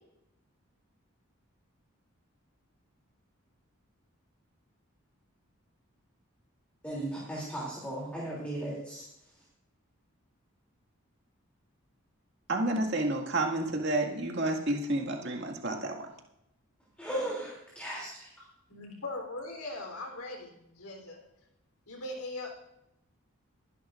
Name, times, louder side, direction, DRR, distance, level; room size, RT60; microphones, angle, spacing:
voice 1, 6.8-9.0 17.0-18.3, right 1 dB, 5° left, -5 dB, 3.0 m, -36 dB
voice 2, 12.5-16.1, right 2 dB, 50° right, 1 dB, 2.1 m, -30 dB
voice 3, 18.7-21.2 21.9-22.5, left 2 dB, 85° left, 2 dB, 3.6 m, -40 dB
22.0 x 11.0 x 2.6 m, 0.82 s
head